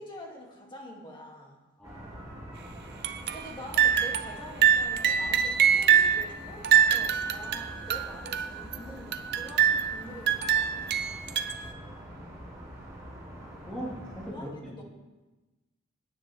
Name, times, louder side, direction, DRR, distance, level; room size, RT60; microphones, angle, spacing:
voice 1, 0.0-1.6 3.3-10.9 14.3-14.8, equal, 25° left, -1 dB, 2.3 m, -45 dB
voice 2, 1.8-2.8 11.4-11.5 11.9-12.0 13.7-14.5, equal, 5° left, -7 dB, 2.0 m, -41 dB
sound 1, 1.8-14.3, equal, 15° right, 2.8 m, -45 dB
sound 2, 3.0-3.5 3.7-4.4 4.6-6.2 6.6-8.7 9.1-10.0 10.3-11.7, right 8 dB, 50° right, 0.6 m, -24 dB
17.0 x 9.3 x 3.4 m, 1.2 s
head